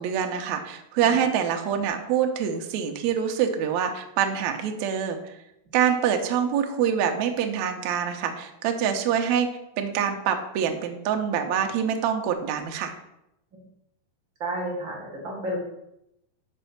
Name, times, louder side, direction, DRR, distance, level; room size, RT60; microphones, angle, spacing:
voice 1, 0.0-5.3 5.7-9.5 9.8-12.9, right 8 dB, 80° right, 4 dB, 1.6 m, -25 dB
voice 2, 14.4-15.6, right 1 dB, 45° right, -3 dB, 1.9 m, -31 dB
6.1 x 5.5 x 5.7 m, 0.82 s
omnidirectional pair, 4.2 m